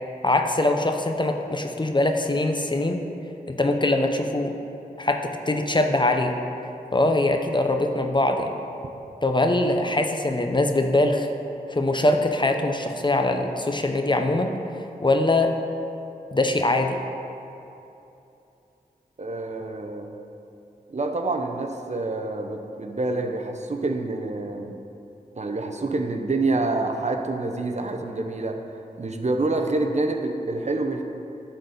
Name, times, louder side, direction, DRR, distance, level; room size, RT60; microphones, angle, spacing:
voice 1, 0.2-3.0 3.5-4.5 5.0-6.3 6.9-8.5 9.2-11.3 11.7-14.5 15.0-15.5 16.3-17.0, left 2 dB, 30° left, 4 dB, 0.7 m, -22 dB
voice 2, 19.2-20.1 20.9-24.8 25.4-28.6 29.0-31.0, right 2 dB, 45° right, 4 dB, 0.8 m, -27 dB
10.5 x 4.2 x 6.6 m, 2.8 s
wide cardioid pair, 60°, 16 cm